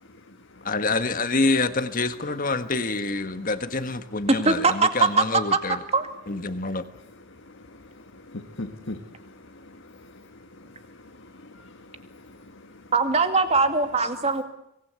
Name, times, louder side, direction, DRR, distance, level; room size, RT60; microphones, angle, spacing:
voice 1, 0.6-5.8 6.3-6.8, left 3 dB, 40° left, 10 dB, 1.5 m, -26 dB
voice 2, 4.3-4.7 5.9-6.1 12.9-14.4, right 3 dB, 30° right, 7 dB, 2.2 m, -21 dB
voice 3, 7.4-12.9, left 2 dB, 60° left, 4 dB, 1.7 m, -43 dB
25.0 x 19.5 x 8.3 m, 0.80 s
head